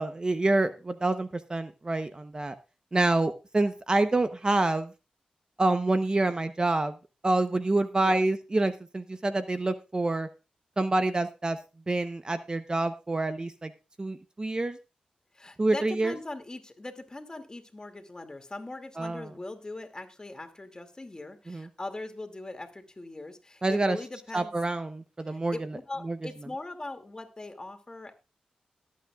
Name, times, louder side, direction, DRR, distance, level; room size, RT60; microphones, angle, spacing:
voice 1, 0.0-2.6 2.9-4.9 5.6-6.9 7.2-10.3 10.8-11.6 11.9-13.7 14.0-14.8 15.6-16.1 19.0-19.3 21.5-21.7 23.6-24.0 24.3-25.8 26.0-26.2, right 2 dB, 30° right, 10 dB, 0.9 m, -27 dB
voice 2, 15.3-24.5 25.2-28.1, left 2 dB, 30° left, 6 dB, 2.4 m, -40 dB
18.5 x 8.6 x 2.4 m, 0.30 s
cardioid pair, 50°, 3 cm